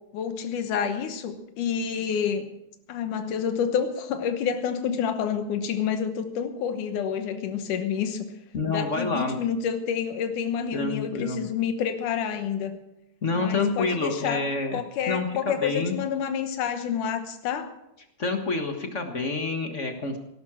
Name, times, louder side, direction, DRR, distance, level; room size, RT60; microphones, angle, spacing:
voice 1, 0.1-2.5 2.9-8.3 8.7-12.8 13.4-14.4 14.7-17.7, left 7 dB, 90° left, 7 dB, 2.7 m, -28 dB
voice 2, 8.5-9.3 10.7-11.4 13.2-14.8 15.1-16.0 18.2-20.2, left 3 dB, 40° left, 5 dB, 1.1 m, -27 dB
18.0 x 11.5 x 6.2 m, 0.87 s
omnidirectional pair, 3.5 m